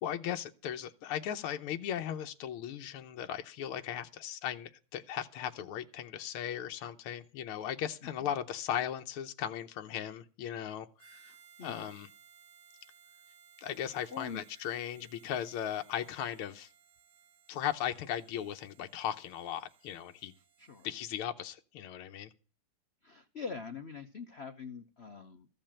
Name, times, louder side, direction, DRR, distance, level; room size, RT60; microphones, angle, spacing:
voice 1, 0.0-11.3 11.6-12.1 13.6-16.7 17.5-20.3 20.8-22.3, left 10 dB, 85° left, 1.7 m, -37 dB
Harmonica, 11.0-21.3, right 8 dB, 80° right, 2.2 m, -61 dB
voice 2, 11.1-11.9 14.1-14.4 20.6-20.9 23.0-25.5, left 5 dB, 70° left, 0.6 m, -44 dB
14.5 x 5.5 x 8.7 m
omnidirectional pair, 2.4 m